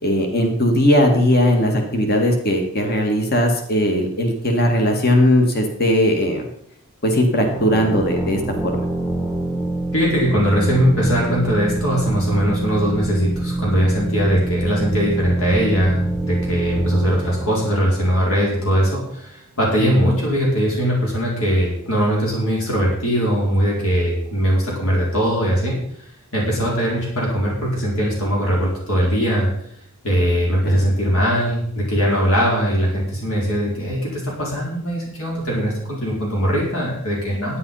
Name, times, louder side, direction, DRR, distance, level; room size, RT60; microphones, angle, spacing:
voice 1, 0.0-6.5 7.0-8.8 30.6-30.8, left 1 dB, 45° left, 3 dB, 1.9 m, -18 dB
sound 1, 7.4-18.9, right 2 dB, ahead, 1.0 m, -26 dB
voice 2, 9.9-25.8 26.3-29.5 30.0-37.6, equal, 70° left, -3 dB, 4.7 m, -20 dB
11.5 x 9.9 x 5.6 m, 0.67 s
head